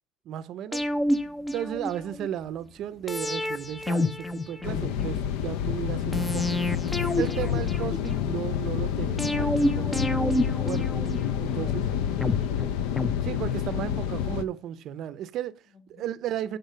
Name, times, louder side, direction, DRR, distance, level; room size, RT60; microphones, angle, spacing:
voice 1, 0.3-0.9 1.5-6.6 7.2-11.0 11.4-11.9 13.2-15.6 15.9-16.6, right 11 dB, 55° right, 0.5 m, -34 dB
sound 1, 0.7-2.3 3.1-5.2 6.1-8.3 9.2-11.6 12.2-13.9 14.2-14.3, left 1 dB, 10° left, 0.5 m, -29 dB
sound 2, 4.6-14.4, left 9 dB, 85° left, 0.5 m, -28 dB
voice 2, 11.5-13.0 15.7-16.1, left 3 dB, 30° left, 1.5 m, -48 dB
8.1 x 3.9 x 6.6 m
cardioid pair, 135°, 0 cm